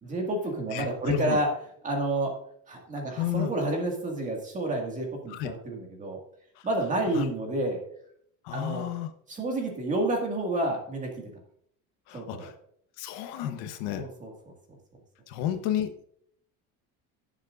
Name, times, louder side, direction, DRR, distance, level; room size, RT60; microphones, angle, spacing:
voice 1, 0.0-1.6 1.8-2.4 2.7-6.2 6.6-7.8 8.5-8.9 9.3-11.3 12.1-12.5 13.9-14.3, right 2 dB, 20° right, 1 dB, 2.0 m, -29 dB
voice 2, 0.7-1.4 3.2-3.5 5.3-5.5 6.6-6.7 7.1-7.3 8.4-9.1 12.1-12.5 13.0-14.1 15.3-16.1, left 11 dB, 70° left, 8 dB, 1.1 m, -32 dB
18.0 x 7.5 x 2.5 m, 0.66 s
cardioid pair, 175°, 39 cm